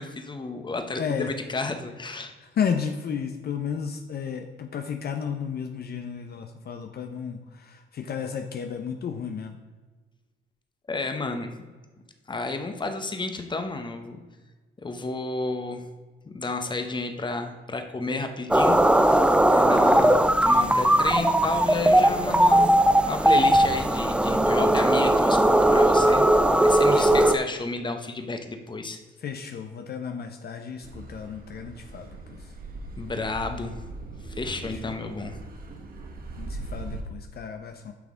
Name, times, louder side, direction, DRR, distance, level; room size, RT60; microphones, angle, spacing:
voice 1, 0.0-2.3 10.9-11.6 12.3-14.2 14.8-15.9 16.2-18.7 19.5-22.7 23.0-26.2 26.6-29.0 33.0-33.8 34.3-35.4, left 3 dB, 25° left, 6 dB, 1.0 m, -31 dB
voice 2, 1.0-1.3 2.4-9.6 26.9-27.3 29.2-32.4 34.6-34.9 36.3-37.9, left 7 dB, 55° left, 5 dB, 0.7 m, -33 dB
sound 1, 18.5-27.4, right 1 dB, 5° right, 0.5 m, -19 dB
Car passing by / Accelerating revving vroom, 30.8-37.0, right 2 dB, 45° right, 1.4 m, -40 dB
9.4 x 5.8 x 3.7 m, 1.3 s
cardioid pair, 90°, 20 cm